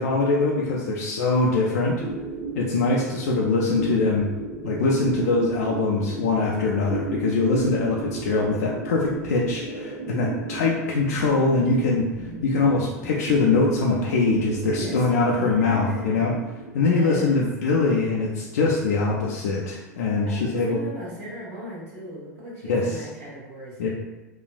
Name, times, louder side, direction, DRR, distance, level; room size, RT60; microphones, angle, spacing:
voice 1, 0.0-2.0 2.5-4.3 4.6-12.1 12.4-16.3 16.7-20.8 22.6-23.0 23.8-23.9, left 3 dB, 65° left, -3 dB, 0.4 m, -23 dB
sound 1, 2.0-20.7, right 2 dB, 25° right, 1.1 m, -35 dB
voice 2, 14.7-16.4 16.8-17.4 20.2-23.9, right 1 dB, 55° right, -6 dB, 1.3 m, -36 dB
4.0 x 2.4 x 2.3 m, 1.1 s
figure-of-eight pair, 85°, 9 cm